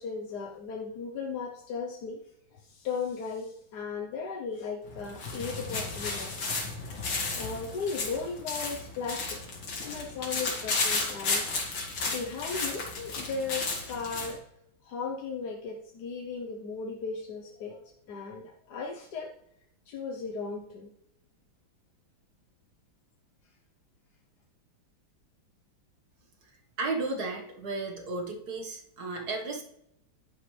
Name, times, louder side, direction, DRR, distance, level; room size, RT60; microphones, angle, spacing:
voice 1, 0.0-2.2 2.5-6.5 7.3-9.4 9.8-11.4 12.1-14.4 14.8-19.3 19.9-20.9, left 5 dB, 60° left, 1 dB, 1.3 m, -36 dB
sound 1, 4.9-14.4, left 3 dB, 85° left, 3.0 m, -33 dB
voice 2, 26.8-29.6, right 3 dB, 50° right, 2 dB, 2.0 m, -34 dB
10.5 x 10.5 x 3.3 m, 0.79 s
omnidirectional pair, 2.2 m